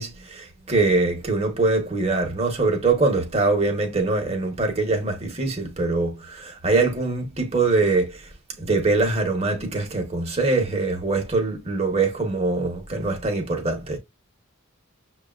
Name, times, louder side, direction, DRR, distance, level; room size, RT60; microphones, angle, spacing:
voice 1, 0.0-8.3 8.6-14.0, right 3 dB, 30° right, 0.9 m, -23 dB
6.4 x 2.2 x 2.3 m
head